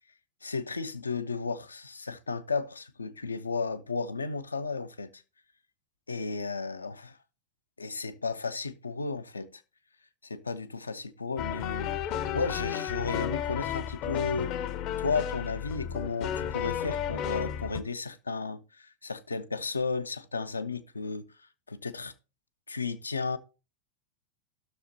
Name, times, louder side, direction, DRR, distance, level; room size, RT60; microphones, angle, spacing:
voice 1, 0.4-5.2 6.1-6.9 7.8-9.6 10.2-11.9 12.3-14.5 15.0-21.3 21.7-22.1 22.7-23.4, left 4 dB, 75° left, 0.5 m, -33 dB
sound 1, 11.4-17.8, left 9 dB, 40° left, 0.6 m, -33 dB
16.0 x 6.4 x 2.8 m
figure-of-eight pair, 90°, 0 cm